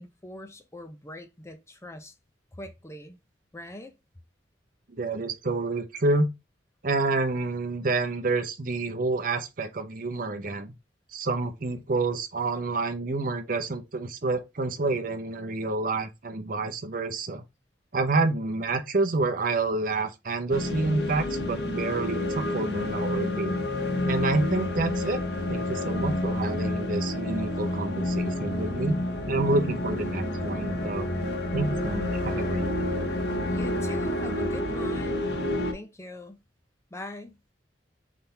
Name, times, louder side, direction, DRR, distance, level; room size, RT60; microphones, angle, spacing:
voice 1, 0.0-2.1 2.5-3.2 3.5-3.9 33.5-35.3 35.7-36.4 36.9-37.4, left 1 dB, 15° left, 0.6 m, -41 dB
voice 2, 5.0-6.3 6.8-10.7 11.1-17.4 17.9-23.5 24.1-25.2 25.5-29.0 29.3-31.1 31.5-32.9, right 3 dB, 50° right, 0.7 m, -28 dB
sound 1, 20.5-35.7, left 1 dB, 65° left, 0.9 m, -29 dB
4.2 x 3.8 x 3.3 m
head